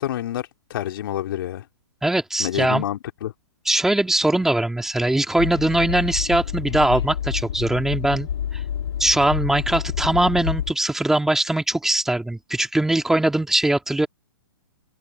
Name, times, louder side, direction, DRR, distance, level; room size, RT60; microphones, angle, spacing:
voice 1, 0.0-1.6 2.4-3.3, left 12 dB, 55° left, 3.0 m, -28 dB
voice 2, 2.0-2.8 3.7-8.6 9.0-14.1, right 1 dB, 5° right, 2.1 m, -21 dB
Train, 5.4-10.7, left 9 dB, 75° left, 1.9 m, -28 dB
open air
hypercardioid pair, 155°, 14 cm